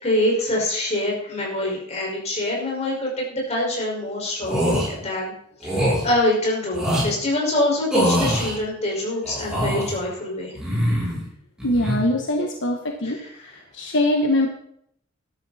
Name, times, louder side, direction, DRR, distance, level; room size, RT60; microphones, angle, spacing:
voice 1, 0.0-5.3 5.6-10.5 13.0-13.1, left 1 dB, 35° left, -3 dB, 5.5 m, -25 dB
sound 1, 4.4-4.9 5.6-6.0 6.7-7.1 7.9-8.5 9.2-9.9 10.5-11.2 11.6-12.0, equal, 5° right, 6.8 m, -23 dB
voice 2, 11.6-13.2 13.4-14.5, left 1 dB, 65° left, 3 dB, 1.4 m, -22 dB
14.0 x 12.5 x 4.3 m, 0.70 s
head